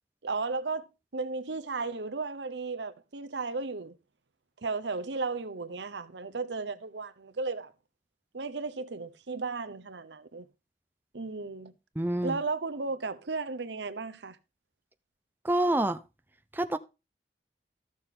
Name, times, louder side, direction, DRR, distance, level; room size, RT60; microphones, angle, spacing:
voice 1, 0.2-4.0 4.6-7.7 8.3-10.4 11.1-11.7 12.2-14.4, right 4 dB, 85° right, 0.9 m, -35 dB
voice 2, 12.0-12.4 15.4-16.0 16.5-16.8, right 1 dB, 10° right, 0.5 m, -27 dB
14.0 x 6.5 x 3.7 m
head